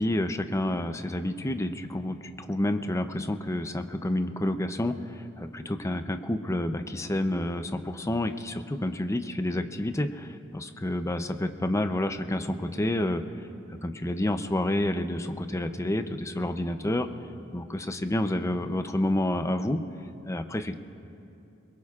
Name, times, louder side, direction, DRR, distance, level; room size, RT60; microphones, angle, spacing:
voice 1, 0.0-13.2 13.8-17.1 17.5-19.8 20.2-20.8, left 1 dB, 15° left, 8 dB, 0.6 m, -29 dB
23.0 x 22.0 x 2.4 m, 2.7 s
head